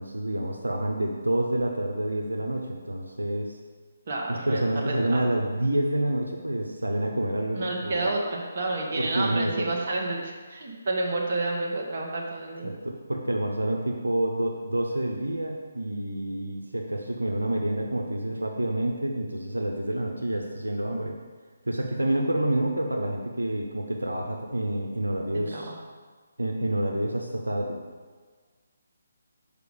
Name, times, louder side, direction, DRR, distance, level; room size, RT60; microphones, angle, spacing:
voice 1, 0.0-3.5 4.3-8.1 9.0-9.7 12.6-21.2 21.6-25.7 26.4-27.8, right 1 dB, 90° right, 1 dB, 0.8 m, -28 dB
voice 2, 4.1-5.2 7.5-12.7 25.5-25.8, right 2 dB, 50° right, -1 dB, 1.4 m, -30 dB
6.8 x 5.2 x 4.9 m, 1.5 s
figure-of-eight pair, 145°, 0 cm